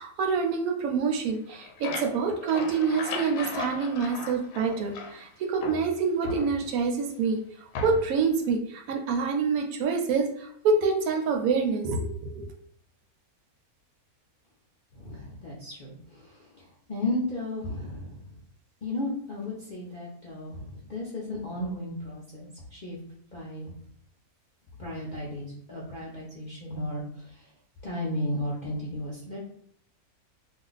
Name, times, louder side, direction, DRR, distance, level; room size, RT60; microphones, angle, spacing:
voice 1, 0.0-7.4 7.8-8.6 8.9-10.3 10.6-12.5, right 5 dB, 75° right, 2 dB, 1.0 m, -26 dB
sound 1, 1.3-5.3 5.6-6.9 7.7-8.3, left 5 dB, 70° left, 0.9 m, -37 dB
voice 2, 14.9-16.3 16.9-18.2 18.8-23.0 23.3-23.7 24.8-27.0 27.8-29.4, left 1 dB, 50° left, -6 dB, 0.5 m, -34 dB
2.5 x 2.2 x 3.8 m, 0.65 s
omnidirectional pair, 1.6 m